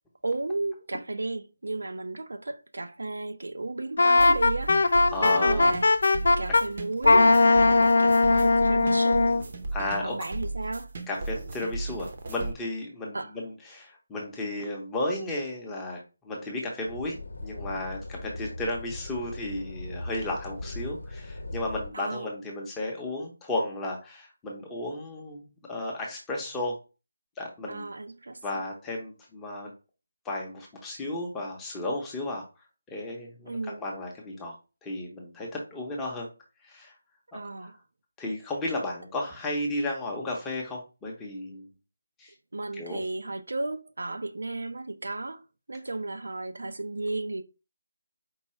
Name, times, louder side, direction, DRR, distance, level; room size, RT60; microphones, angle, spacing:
voice 1, 0.2-4.8 5.2-5.9 6.4-9.4 10.0-10.9 13.1-13.3 21.9-22.3 27.7-28.4 33.5-33.8 37.3-37.8 42.5-45.4 45.7-47.4, right 2 dB, 80° right, 0.5 m, -34 dB
Wind instrument woodwind instrument, 4.0-6.6 7.0-9.4, left 3 dB, 60° left, 0.3 m, -20 dB
sound 1, 4.2-12.5, right 2 dB, 40° right, 0.7 m, -35 dB
voice 2, 5.1-5.8 9.7-10.2 11.1-26.8 27.4-27.9 28.4-29.7 30.2-32.5 32.9-34.5 34.8-36.3 36.6-36.9 37.6-37.7 38.2-41.7 42.2-42.3 42.7-43.0, left 1 dB, 5° left, 0.7 m, -34 dB
sound 2, 16.9-21.9, left 2 dB, 75° left, 0.7 m, -39 dB
4.6 x 2.3 x 4.2 m
figure-of-eight pair, 170°, 0 cm